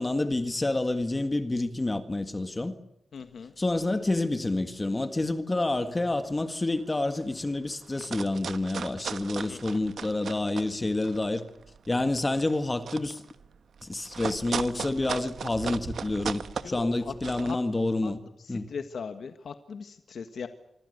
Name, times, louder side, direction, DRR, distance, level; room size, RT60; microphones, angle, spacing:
voice 1, 0.0-2.7 3.6-11.4 11.9-13.2 13.8-18.2 18.5-18.7, left 2 dB, 20° left, 1.7 m, -28 dB
voice 2, 3.1-3.5 9.5-9.6 16.6-17.1 17.4-17.6 18.0-18.1 18.4-20.5, left 6 dB, 65° left, 1.6 m, -39 dB
sound 1, 6.0-6.3 6.8-6.9 7.0-7.5 7.8-10.7 11.0-17.5, right 6 dB, 70° right, 1.3 m, -37 dB
25.5 x 25.5 x 6.7 m
wide cardioid pair, 175°, 0 cm